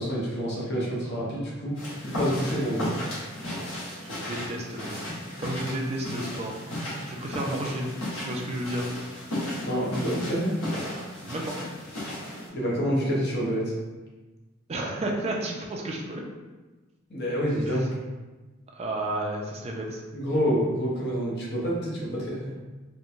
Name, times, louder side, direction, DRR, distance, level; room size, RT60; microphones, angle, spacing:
voice 1, 0.0-1.8 2.0-2.9 9.6-10.6 12.5-13.7 17.1-17.9 20.1-22.5, equal, 55° left, -4 dB, 0.7 m, -27 dB
sound 1, 1.7-12.5, left 1 dB, 70° left, 1.1 m, -35 dB
voice 2, 4.1-5.1 5.4-6.6 7.1-7.9 8.1-8.9 11.2-11.6 14.7-16.2 17.7-17.8 18.7-20.0, right 1 dB, 30° right, 0 dB, 0.3 m, -32 dB
3.0 x 2.1 x 2.5 m, 1.2 s
head